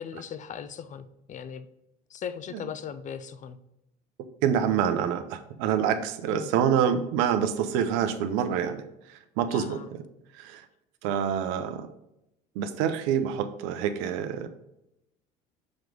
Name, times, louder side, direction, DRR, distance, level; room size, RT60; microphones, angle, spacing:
voice 1, 0.0-1.7 2.1-3.6 6.3-6.5 9.5-9.9 11.1-11.2, left 8 dB, 35° left, 12 dB, 0.5 m, -38 dB
voice 2, 4.4-8.8 9.1-10.0 10.3-10.6 11.0-11.9 12.6-14.5, right 8 dB, 75° right, 10 dB, 0.7 m, -27 dB
6.4 x 3.1 x 5.1 m, 0.85 s
supercardioid pair, 85°, 21 cm